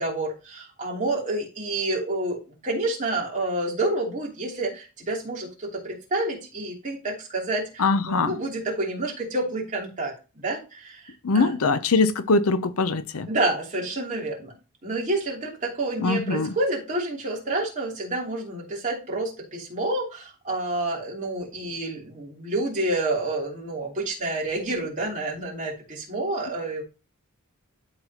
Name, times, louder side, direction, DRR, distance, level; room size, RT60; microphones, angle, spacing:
voice 1, 0.0-11.5 13.3-14.5 14.8-26.8, right 2 dB, 35° right, 3.0 m, -29 dB
voice 2, 7.8-8.3 11.2-13.3 16.0-16.5, left 3 dB, 70° left, 0.6 m, -22 dB
12.0 x 4.1 x 2.9 m
head